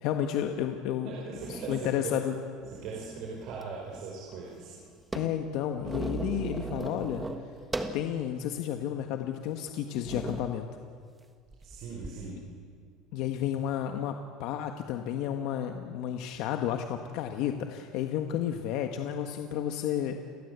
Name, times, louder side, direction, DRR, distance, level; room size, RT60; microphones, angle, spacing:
voice 1, 0.0-1.1 1.5-2.3 5.1-7.3 7.9-10.7 13.1-14.1 14.4-20.2, left 10 dB, 55° left, 5 dB, 1.5 m, -31 dB
sound 1, 0.8-0.9 1.4-1.9 2.6-3.7 3.9-4.0 4.3-8.1 8.6-8.7 9.4-9.6 10.0-10.6 11.5-12.1, right 3 dB, 10° right, 1.5 m, -38 dB
voice 2, 1.0-2.1 2.7-4.7 11.6-12.4, right 4 dB, 45° right, -3 dB, 5.2 m, -40 dB
30.0 x 23.0 x 8.2 m, 2.1 s
cardioid pair, 170°, 0 cm